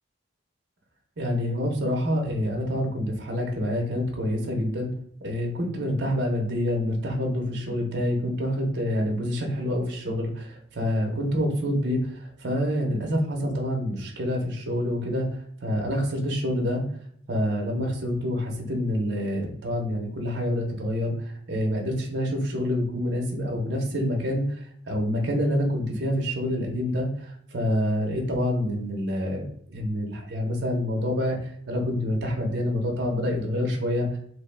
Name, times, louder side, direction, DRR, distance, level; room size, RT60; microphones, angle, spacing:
voice 1, 1.2-4.9 5.2-16.8 17.3-29.4 29.7-34.2, equal, 55° right, 0 dB, 0.6 m, -27 dB
2.9 x 2.1 x 3.1 m, 0.65 s
head